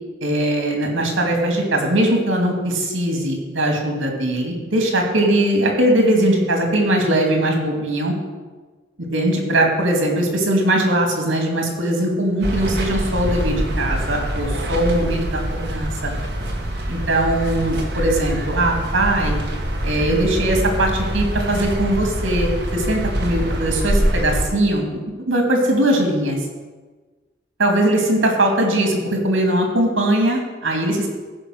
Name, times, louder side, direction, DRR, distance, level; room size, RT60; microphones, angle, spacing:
voice 1, 0.2-8.1 9.1-16.1 16.9-19.3 19.8-25.0 25.2-26.4 27.6-31.1, right 1 dB, 90° right, 2 dB, 2.5 m, -20 dB
sound 1, 12.4-24.4, equal, 60° right, 1.8 m, -24 dB
15.5 x 5.2 x 6.4 m, 1.3 s
head